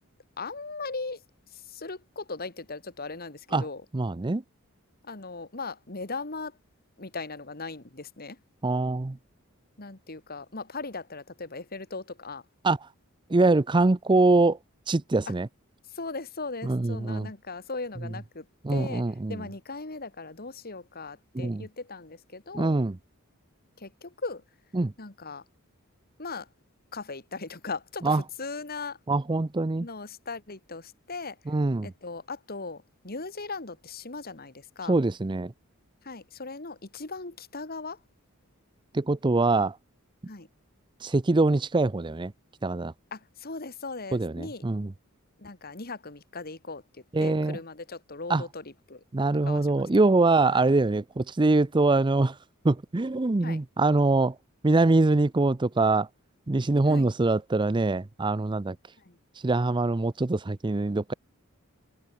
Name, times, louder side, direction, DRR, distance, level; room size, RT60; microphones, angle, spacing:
voice 1, 0.4-1.2 1.5-3.8 5.0-6.6 7.0-8.4 9.8-12.4 15.9-19.0 19.3-22.7 23.8-24.4 25.0-25.4 26.2-26.5 26.9-29.0 29.8-31.4 31.8-35.0 36.0-38.0 40.3-40.5 43.1-44.6 45.4-49.0 49.5-50.0 50.5-50.6 53.4-53.6 56.9-57.1 59.0-59.2, left 3 dB, 45° left, 2.3 m, -38 dB
voice 2, 3.9-4.4 8.6-9.2 12.6-12.8 13.3-14.6 14.9-15.5 16.6-17.3 18.6-19.4 21.3-21.7 22.5-23.0 24.7-24.9 28.0-28.2 29.1-29.9 31.5-31.9 34.9-35.5 38.9-39.8 41.0-42.3 42.6-42.9 44.1-44.9 47.1-47.6 48.3-48.4 49.1-52.4 52.6-54.4 54.6-56.1 56.5-58.8 59.4-61.1, right 2 dB, 20° right, 0.5 m, -24 dB
head